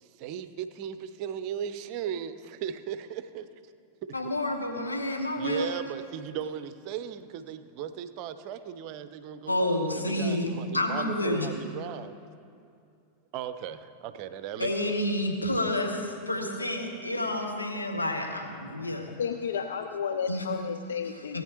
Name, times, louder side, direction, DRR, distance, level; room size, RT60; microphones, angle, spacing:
voice 1, 0.0-3.5 5.4-12.2 13.3-14.9, right 9 dB, 45° right, 12 dB, 0.6 m, -37 dB
voice 2, 4.1-5.7 9.5-11.5 14.6-19.2 20.3-20.4 21.3-21.4, left 1 dB, 80° left, 2 dB, 1.2 m, -29 dB
voice 3, 19.2-21.4, left 7 dB, 65° left, 7 dB, 0.4 m, -32 dB
17.5 x 8.9 x 3.0 m, 2.4 s
figure-of-eight pair, 90°, 0 cm